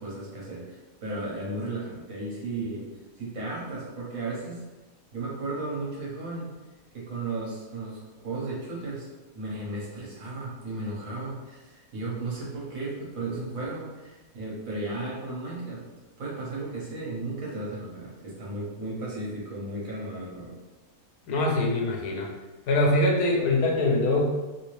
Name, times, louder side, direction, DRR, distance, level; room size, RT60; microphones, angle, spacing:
voice 1, 0.0-2.8 3.2-4.6 5.1-6.5 6.9-9.1 9.3-15.8 16.2-20.5, right 2 dB, 65° right, -5 dB, 1.3 m, -35 dB
voice 2, 21.3-22.3 22.7-24.2, left 2 dB, 80° left, 0 dB, 1.2 m, -23 dB
3.0 x 2.8 x 3.1 m, 1.2 s
omnidirectional pair, 1.6 m